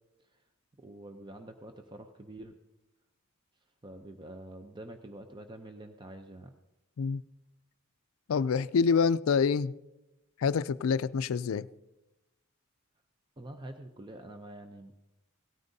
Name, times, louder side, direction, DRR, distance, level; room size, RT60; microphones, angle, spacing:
voice 1, 0.8-2.5 3.8-6.5 13.4-14.9, right 1 dB, 20° right, 0.6 m, -46 dB
voice 2, 8.3-9.7 10.4-11.7, left 5 dB, 70° left, 0.4 m, -26 dB
17.5 x 13.0 x 2.7 m
head